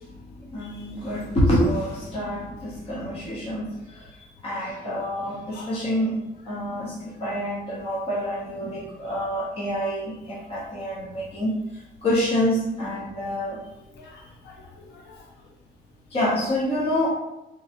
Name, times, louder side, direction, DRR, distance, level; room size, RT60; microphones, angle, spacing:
voice 1, 0.0-4.1 4.4-6.2 6.5-13.6 16.1-17.1, equal, 35° left, -6 dB, 0.8 m, -27 dB
voice 2, 0.6-0.9 4.2-4.3 5.5-5.9 10.4-10.5 13.9-15.3, left 3 dB, 85° left, -1 dB, 0.7 m, -47 dB
3.3 x 3.0 x 2.8 m, 0.93 s
cardioid pair, 170°, 17 cm